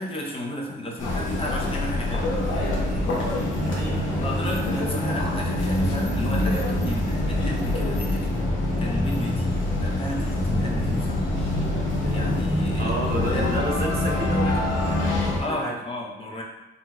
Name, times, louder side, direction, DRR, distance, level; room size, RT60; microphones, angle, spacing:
voice 1, 0.0-2.4 3.8-8.3 8.8-9.5 9.8-11.3 12.1-13.0 13.3-13.7 15.4-16.4, left 1 dB, 30° left, -2 dB, 0.6 m, -33 dB
sound 1, 1.0-15.4, left 1 dB, 75° left, 0.8 m, -25 dB
voice 2, 2.8-4.3 12.8-15.8, right 1 dB, 50° right, -2 dB, 0.7 m, -32 dB
3.7 x 2.4 x 2.2 m, 1.0 s
cardioid pair, 90°, 20 cm